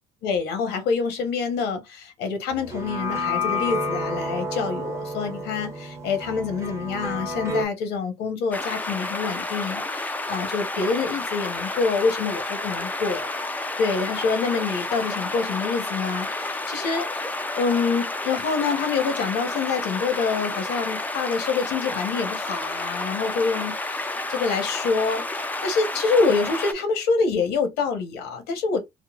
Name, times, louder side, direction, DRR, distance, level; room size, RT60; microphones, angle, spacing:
voice 1, 0.2-13.3 13.8-17.1 17.5-28.8, left 5 dB, 85° left, 0.9 m, -26 dB
sound 1, 2.5-7.7, left 2 dB, 15° right, 0.8 m, -30 dB
sound 2, 8.5-26.7, left 2 dB, 10° left, 0.3 m, -30 dB
3.7 x 2.1 x 2.3 m
cardioid pair, 110°, 17 cm